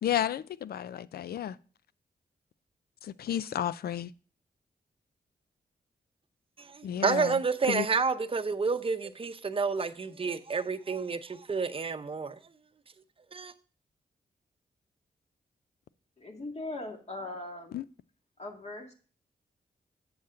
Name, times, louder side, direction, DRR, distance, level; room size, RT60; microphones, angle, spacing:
voice 1, 0.0-1.6 3.0-4.1 6.8-7.4 7.7-7.9 17.7-17.8, left 10 dB, 75° left, 0.4 m, -32 dB
voice 2, 6.6-12.4 13.3-13.5, right 5 dB, 35° right, 0.7 m, -30 dB
voice 3, 16.2-17.8 18.4-18.9, left 2 dB, 45° left, 2.0 m, -40 dB
7.8 x 7.2 x 3.7 m
cardioid pair, 80°, 16 cm